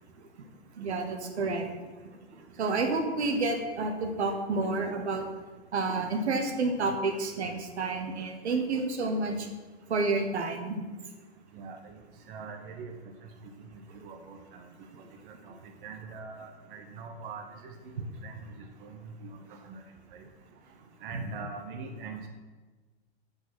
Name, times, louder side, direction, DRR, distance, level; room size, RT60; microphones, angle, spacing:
voice 1, 0.8-1.7 2.0-5.2 5.7-9.5 9.9-10.8 14.9-15.0 21.1-21.2, right 3 dB, 80° right, 4 dB, 1.2 m, -30 dB
voice 2, 11.5-12.0 12.3-12.9 13.9-14.7 15.5-15.6 15.8-17.9 18.2-18.3 18.8-19.3 19.6-19.8 20.1-20.2 21.0-22.3, right 4 dB, 50° right, 4 dB, 1.0 m, -42 dB
6.1 x 5.2 x 6.0 m, 1.3 s
hypercardioid pair, 120°, 33 cm